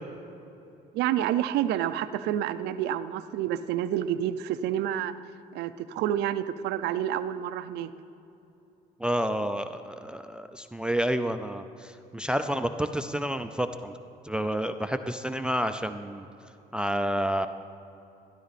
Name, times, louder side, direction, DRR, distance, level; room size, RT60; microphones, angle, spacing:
voice 1, 0.9-5.1 5.5-7.9, right 11 dB, 80° right, 12 dB, 0.5 m, -28 dB
voice 2, 9.0-13.9 14.2-16.3 16.7-17.5, equal, 5° right, 10 dB, 0.4 m, -29 dB
13.0 x 12.0 x 4.1 m, 2.9 s
cardioid pair, 110°, 17 cm